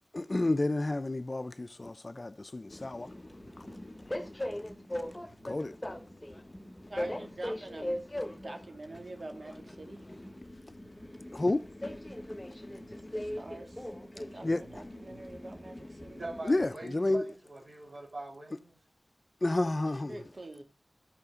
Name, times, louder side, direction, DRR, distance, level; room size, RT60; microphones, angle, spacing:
voice 1, 0.1-3.1 3.6-3.7 5.4-5.8 11.3-11.7 14.4-14.6 16.4-17.3 19.4-20.2, left 2 dB, 45° left, 0.6 m, -30 dB
Train, 2.7-16.7, left 1 dB, 25° left, 1.3 m, -41 dB
sound 1, 3.3-16.1, equal, ahead, 2.9 m, -56 dB
voice 2, 6.9-7.9 8.3-10.0 13.1-13.9 14.1-16.2 20.1-20.6, right 2 dB, 60° right, 2.5 m, -45 dB
voice 3, 16.2-18.8, right 2 dB, 80° right, 3.2 m, -43 dB
12.5 x 5.9 x 3.8 m
cardioid pair, 40°, 0 cm